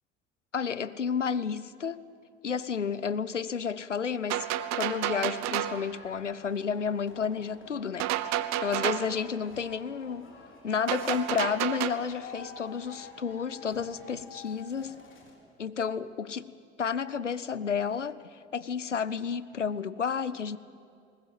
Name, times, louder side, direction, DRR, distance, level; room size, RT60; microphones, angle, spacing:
voice 1, 0.5-2.0 2.4-4.5 4.7-8.1 8.6-10.3 10.6-15.0 15.6-16.5 16.8-20.6, left 6 dB, 90° left, 17 dB, 0.6 m, -31 dB
sound 1, 4.3-5.9 8.0-9.1 10.9-11.9, right 13 dB, 50° right, 1.0 m, -30 dB
sound 2, 5.6-15.4, left 4 dB, 35° left, 4.3 m, -50 dB
20.5 x 19.5 x 7.6 m, 2.3 s
figure-of-eight pair, 60°, 35 cm